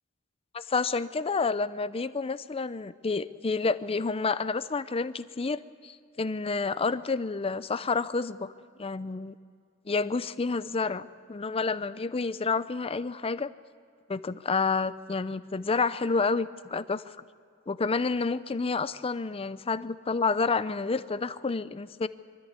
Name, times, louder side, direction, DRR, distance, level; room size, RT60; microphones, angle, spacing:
voice 1, 0.5-8.5 8.8-9.4 9.9-13.5 14.1-17.2 17.7-22.1, left 4 dB, 25° left, 14 dB, 0.5 m, -29 dB
23.5 x 13.5 x 8.2 m, 2.2 s
head